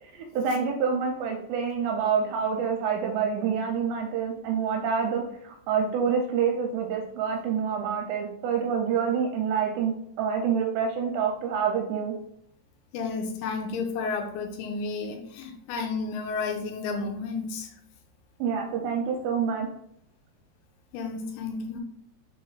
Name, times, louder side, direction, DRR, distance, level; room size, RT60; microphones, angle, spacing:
voice 1, 0.1-12.1 18.4-19.7, right 6 dB, 85° right, 1 dB, 2.8 m, -27 dB
voice 2, 12.9-17.7 20.9-21.8, left 4 dB, 85° left, 3 dB, 3.0 m, -32 dB
6.9 x 3.3 x 2.3 m, 0.72 s
omnidirectional pair, 5.1 m